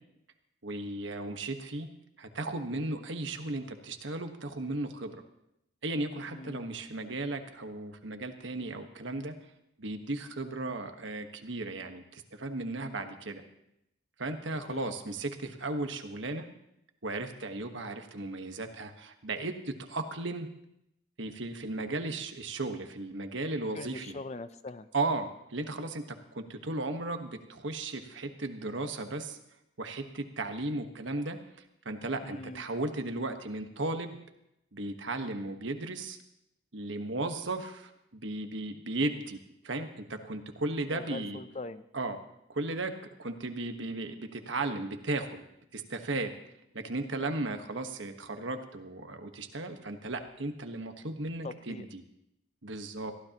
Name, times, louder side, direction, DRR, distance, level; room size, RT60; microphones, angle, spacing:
voice 1, 0.6-1.9 2.2-5.2 5.8-9.3 9.8-13.4 14.2-16.5 17.0-20.5 21.2-24.2 24.9-29.4 29.8-31.4 31.8-34.2 34.7-36.2 36.7-39.4 39.6-41.4 41.9-42.2 42.5-42.9 43.2-45.4 45.7-46.3 46.7-52.0 52.6-53.1, right 2 dB, 70° right, 6 dB, 1.3 m, -35 dB
voice 2, 6.3-6.6 14.7-14.9 23.6-24.9 32.2-32.6 40.9-41.8 51.4-51.9, left 3 dB, 35° left, 12 dB, 0.5 m, -42 dB
22.5 x 15.5 x 3.0 m, 0.82 s
head